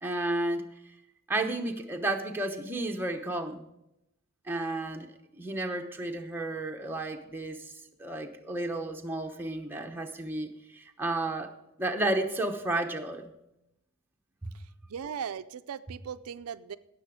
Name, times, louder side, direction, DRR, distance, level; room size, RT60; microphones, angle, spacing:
voice 1, 0.0-0.7 1.3-3.7 4.5-5.1 5.4-7.7 8.0-11.5 11.8-13.3 14.4-14.5, right 2 dB, 10° right, 2 dB, 0.9 m, -32 dB
voice 2, 14.9-16.8, right 7 dB, 80° right, 12 dB, 0.4 m, -38 dB
17.5 x 6.9 x 4.9 m, 0.86 s
head